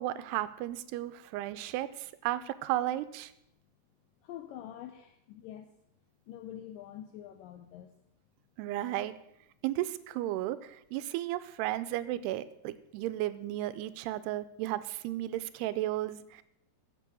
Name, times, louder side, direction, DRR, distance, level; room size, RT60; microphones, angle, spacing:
voice 1, 0.0-3.3 8.6-9.1 9.6-16.4, right 14 dB, 90° right, 15 dB, 2.7 m, -34 dB
voice 2, 4.2-5.7 6.3-7.9, left 11 dB, 90° left, 7 dB, 1.9 m, -46 dB
14.0 x 7.4 x 6.1 m, 0.79 s
omnidirectional pair, 4.6 m